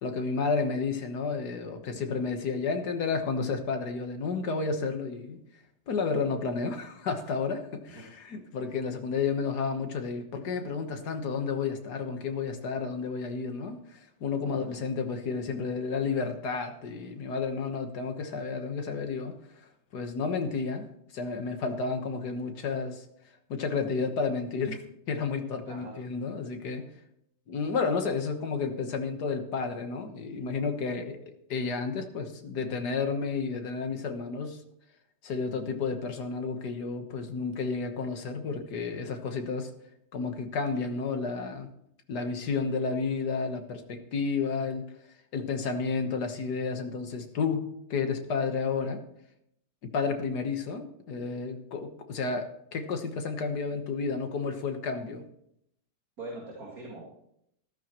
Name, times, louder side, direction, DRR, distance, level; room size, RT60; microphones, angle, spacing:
voice 1, 0.0-5.4 5.9-20.9 21.1-23.0 23.5-24.8 25.1-26.9 27.5-34.6 35.2-39.7 40.1-41.7 42.1-44.9 45.3-49.0 49.8-55.2, left 4 dB, 55° left, 6 dB, 1.8 m, -31 dB
voice 2, 14.4-14.9 25.7-25.9 56.2-57.0, right 2 dB, 45° right, -3 dB, 2.6 m, -42 dB
13.5 x 13.0 x 3.0 m, 0.74 s
omnidirectional pair, 2.1 m